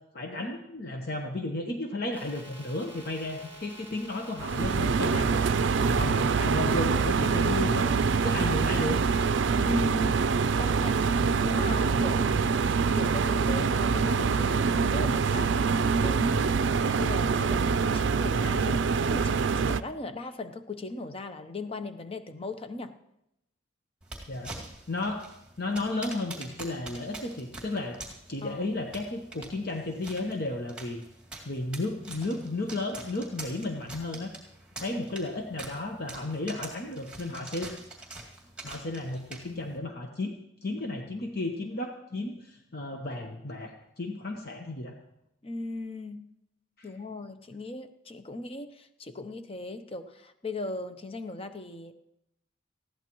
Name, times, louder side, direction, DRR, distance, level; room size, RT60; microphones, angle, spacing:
voice 1, 0.1-5.4 5.8-7.9 8.2-9.0 24.3-24.5 24.9-25.2 25.6-28.0 28.3-31.0 31.4-34.3 34.8-37.7 38.6-40.3 40.6-44.9 46.8-46.9, left 2 dB, 50° left, 3 dB, 1.0 m, -33 dB
sound 1, 2.1-9.4, equal, 10° left, 5.0 m, -49 dB
sound 2, 4.4-19.8, right 5 dB, 65° right, 0.4 m, -25 dB
voice 2, 5.8-6.1 9.6-10.3 10.6-12.6 12.9-22.9 28.4-28.7 45.4-46.3 46.8-51.9, left 2 dB, 30° left, 9 dB, 0.7 m, -38 dB
sound 3, 24.0-39.8, right 2 dB, 5° right, 2.2 m, -45 dB
19.5 x 15.0 x 3.1 m, 0.83 s
head